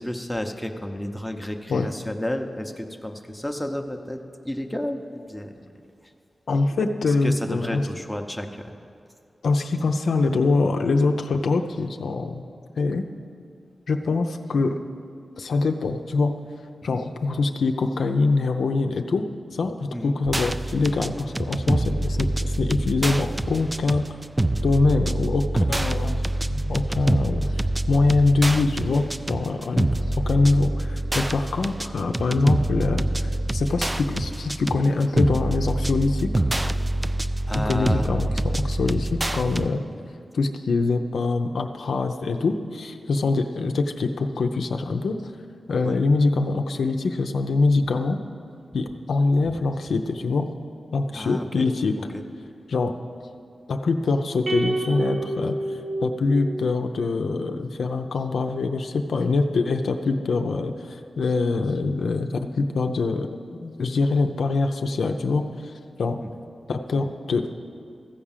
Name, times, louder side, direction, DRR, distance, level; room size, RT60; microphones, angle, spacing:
voice 1, 0.0-5.7 7.1-8.7 19.9-20.2 25.1-25.2 37.5-38.5 39.9-40.1 45.8-46.0 47.8-47.9 51.1-51.7 52.0-52.2 66.2-66.3, left 1 dB, 5° left, 4 dB, 0.7 m, -32 dB
voice 2, 6.5-7.8 9.4-12.4 12.8-13.0 13.9-14.8 15.4-16.3 16.8-19.2 19.5-24.1 24.6-26.2 26.5-27.6 27.9-29.9 30.3-36.3 37.7-39.8 40.3-45.2 45.7-48.2 48.7-50.5 50.9-51.9 52.7-52.9 53.7-55.6 56.0-65.4 66.0-66.2 66.7-67.5, left 3 dB, 85° left, 5 dB, 0.6 m, -24 dB
sound 1, 20.2-39.7, right 1 dB, 15° right, 0.3 m, -26 dB
sound 2, 54.5-56.9, right 1 dB, 55° right, 1.2 m, -28 dB
15.0 x 4.9 x 7.3 m, 2.3 s
wide cardioid pair, 100°, 0 cm